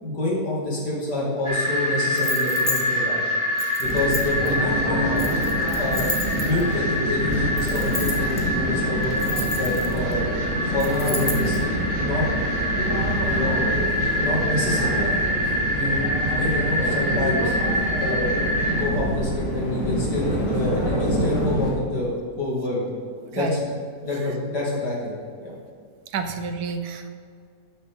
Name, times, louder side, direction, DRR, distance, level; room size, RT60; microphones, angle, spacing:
voice 1, 0.0-3.2 3.8-5.2 5.7-9.1 9.5-10.3 10.7-11.6 12.0-12.3 13.2-13.9 14.2-15.0 15.7-17.6 17.9-18.3 18.7-22.8 23.3-23.7 24.0-25.2 25.4-25.5, left 2 dB, 85° left, -4 dB, 3.2 m, -27 dB
sound 1, 1.4-18.8, left 1 dB, 20° right, 2.5 m, -26 dB
sound 2, 2.1-2.8 3.6-4.5 5.2-6.7 7.6-8.4 9.0-10.1 10.8-11.6, left 1 dB, 10° left, 0.9 m, -31 dB
sound 3, 3.8-21.7, equal, 45° left, 2.6 m, -26 dB
voice 2, 26.1-27.1, right 5 dB, 70° right, 8 dB, 1.3 m, -29 dB
12.0 x 9.9 x 3.8 m, 2.2 s
omnidirectional pair, 1.7 m